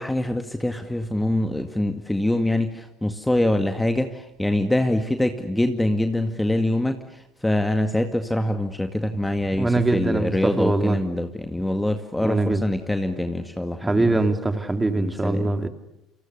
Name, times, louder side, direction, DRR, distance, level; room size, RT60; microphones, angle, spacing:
voice 1, 0.0-14.3 14.9-15.5, left 1 dB, 10° left, 7 dB, 2.0 m, -24 dB
voice 2, 9.6-11.0 12.2-12.6 13.8-15.7, right 2 dB, 15° right, 8 dB, 3.0 m, -22 dB
29.5 x 27.5 x 6.8 m, 0.85 s
hypercardioid pair, 60°, 0 cm